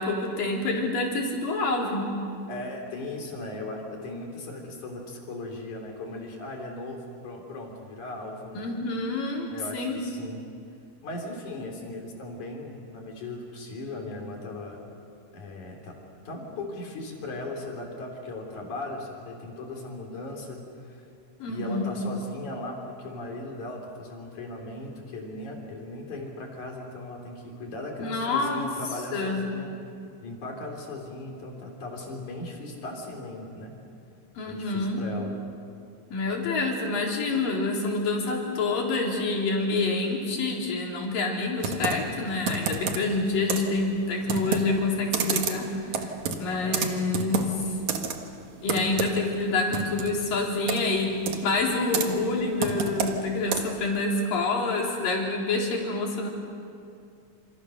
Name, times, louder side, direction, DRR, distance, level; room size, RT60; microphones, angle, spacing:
voice 1, 0.0-2.1 8.5-10.0 21.4-22.0 28.0-28.7 29.1-29.4 34.4-35.0 36.1-47.5 48.6-56.3, left 3 dB, 80° left, -1 dB, 5.3 m, -27 dB
voice 2, 2.5-8.7 9.5-10.4 11.0-14.8 15.3-15.9 16.2-21.0 21.4-29.7 30.2-33.7 34.4-35.4 46.6-46.9, left 2 dB, 60° left, 1 dB, 5.1 m, -38 dB
Computer keyboard, 41.6-53.9, right 5 dB, 60° right, 2.8 m, -31 dB
28.5 x 28.0 x 6.6 m, 2.5 s
omnidirectional pair, 3.9 m